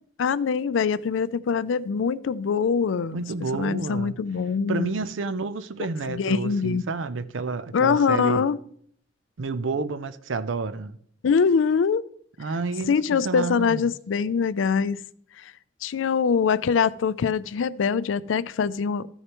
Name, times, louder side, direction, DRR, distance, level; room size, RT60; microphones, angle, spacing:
voice 1, 0.2-3.2 3.6-4.9 6.1-6.8 7.7-8.6 11.2-12.0 12.9-15.0 15.4-15.5 15.8-19.1, left 6 dB, 80° left, 0.4 m, -23 dB
voice 2, 3.1-4.2 4.7-8.5 9.4-11.0 12.4-13.9, right 3 dB, 80° right, 0.6 m, -30 dB
14.0 x 6.5 x 3.0 m
head